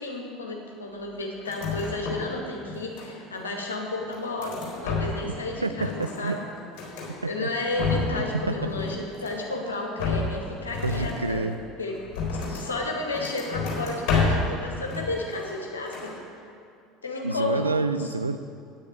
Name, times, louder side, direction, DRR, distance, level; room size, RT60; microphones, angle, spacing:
voice 1, 0.0-6.4 7.3-11.4 11.8-12.0 12.3-16.1 17.0-17.7, left 2 dB, 75° left, 0 dB, 1.8 m, -32 dB
sound 1, 1.4-2.4 2.6-3.4 3.9-5.4 5.7-7.1 7.5-8.3 8.6-9.5 10.0-12.7 13.1-14.5 14.9-15.6 15.9-16.2, left 4 dB, 50° left, 4.0 m, -30 dB
voice 2, 5.6-6.4 7.2-7.5 8.5-8.6 10.8-11.6 17.2-18.4, right 3 dB, 85° right, 11 dB, 0.4 m, -28 dB
9.9 x 9.5 x 8.2 m, 2.4 s
figure-of-eight pair, 70°, 0 cm